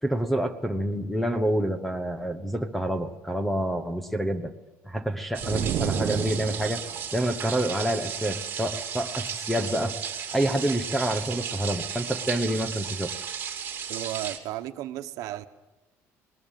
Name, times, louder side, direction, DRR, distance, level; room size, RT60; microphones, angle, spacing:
voice 1, 0.0-4.5 4.8-6.8 7.1-10.0 10.3-13.1, right 1 dB, ahead, 10 dB, 1.2 m, -27 dB
sound 1, 5.3-14.4, right 7 dB, 35° right, 2.7 m, -34 dB
sound 2, 5.4-7.0, right 11 dB, 50° right, 0.7 m, -30 dB
voice 2, 13.9-15.5, right 14 dB, 75° right, 9 dB, 1.3 m, -34 dB
20.0 x 19.0 x 9.1 m, 1.1 s
cardioid pair, 155°, 6 cm